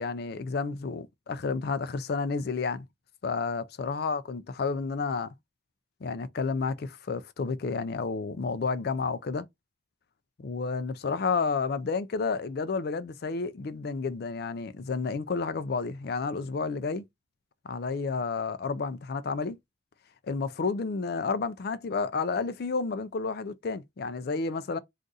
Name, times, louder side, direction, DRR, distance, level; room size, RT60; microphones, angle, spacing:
voice 1, 0.0-2.9 3.2-5.3 6.0-9.5 10.4-17.0 17.7-19.6 20.3-24.8, left 4 dB, 55° left, 0.4 m, -31 dB
2.5 x 2.4 x 3.9 m
head